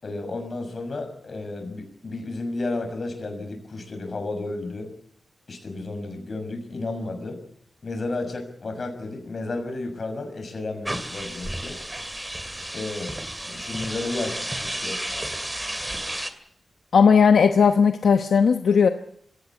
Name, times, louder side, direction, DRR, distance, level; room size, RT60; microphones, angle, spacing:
voice 1, 0.0-4.9 5.5-7.4 7.8-11.8 12.7-13.1 13.4-15.0, left 2 dB, 50° left, 5 dB, 6.3 m, -32 dB
sound 1, 10.8-16.3, right 1 dB, 15° right, 2.3 m, -32 dB
voice 2, 16.9-18.9, left 6 dB, 85° left, 7 dB, 1.0 m, -17 dB
22.5 x 17.0 x 8.5 m, 0.67 s
wide cardioid pair, 100°, 0 cm